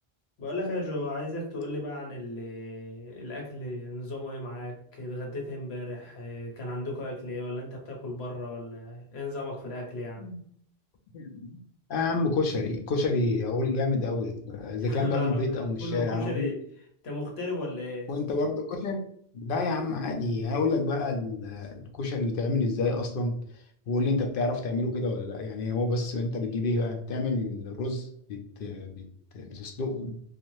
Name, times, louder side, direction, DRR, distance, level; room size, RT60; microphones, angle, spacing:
voice 1, 0.4-10.3 14.8-16.6 17.0-18.1, left 1 dB, 90° left, 0 dB, 1.1 m, -35 dB
voice 2, 11.1-11.6 11.9-16.5 18.1-19.0 19.3-23.3 23.9-29.0 29.3-30.2, left 3 dB, 65° left, 3 dB, 0.7 m, -29 dB
3.1 x 2.4 x 2.6 m, 0.64 s
omnidirectional pair, 1.0 m